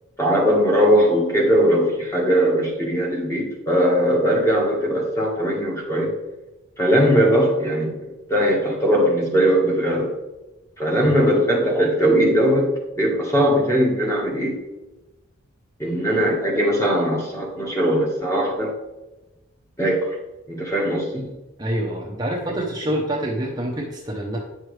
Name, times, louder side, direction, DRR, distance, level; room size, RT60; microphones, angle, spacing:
voice 1, 0.2-6.1 6.8-10.1 10.8-14.6 15.8-18.7 19.8-20.2 20.5-21.2, equal, 15° left, -2 dB, 1.5 m, -20 dB
voice 2, 21.6-24.4, right 1 dB, 20° right, -2 dB, 0.8 m, -26 dB
9.5 x 6.2 x 3.3 m, 1.1 s
head